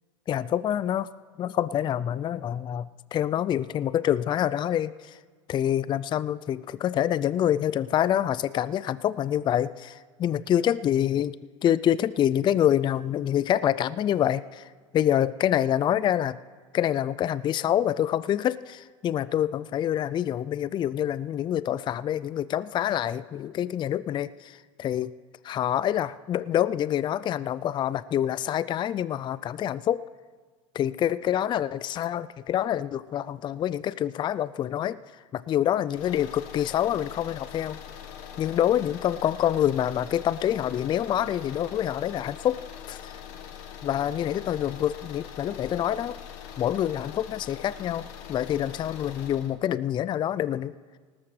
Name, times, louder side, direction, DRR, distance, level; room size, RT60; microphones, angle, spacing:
voice 1, 0.3-1.1 1.4-5.2 5.5-11.4 11.6-16.4 16.7-25.1 25.4-30.0 30.7-37.8 38.4-43.2 43.8-46.2 46.6-50.7, left 11 dB, 30° left, 18 dB, 0.3 m, -26 dB
sound 1, 35.9-49.5, left 8 dB, 65° left, 1.3 m, -43 dB
19.0 x 13.0 x 3.2 m, 1.5 s
hypercardioid pair, 90°, 17 cm